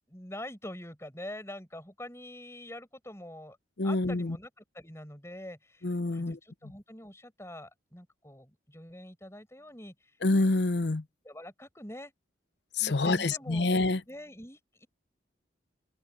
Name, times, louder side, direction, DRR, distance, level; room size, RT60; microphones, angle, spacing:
voice 1, 0.1-3.6 3.8-9.9 11.2-12.1 12.8-13.7 14.1-14.9, left 1 dB, 15° left, 5.9 m, -45 dB
voice 2, 3.8-4.4 5.8-6.4 10.2-11.0 12.8-14.0, left 2 dB, 65° left, 0.7 m, -27 dB
open air
head